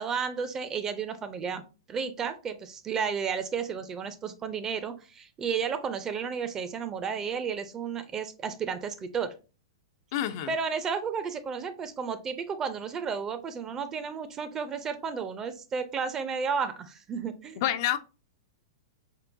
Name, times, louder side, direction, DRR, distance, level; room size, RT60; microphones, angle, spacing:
voice 1, 0.0-1.6 1.9-9.4 10.5-17.6, right 6 dB, 20° right, 11 dB, 0.4 m, -32 dB
voice 2, 10.1-10.5 17.6-18.0, left 12 dB, 50° left, 11 dB, 0.3 m, -28 dB
3.7 x 2.2 x 2.5 m, 0.32 s
hypercardioid pair, 130°, 2 cm